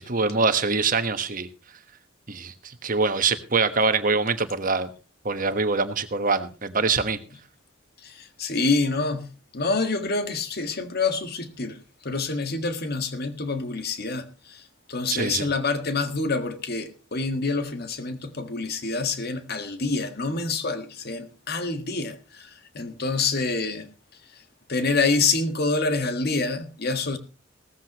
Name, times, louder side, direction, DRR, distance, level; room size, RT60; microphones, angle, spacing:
voice 1, 0.0-1.5 2.3-2.5 2.8-4.9 5.2-7.2 15.1-15.5, right 4 dB, 45° right, 1.3 m, -24 dB
voice 2, 8.0-23.9 24.7-27.2, left 3 dB, 50° left, 1.8 m, -27 dB
17.5 x 14.0 x 3.0 m
head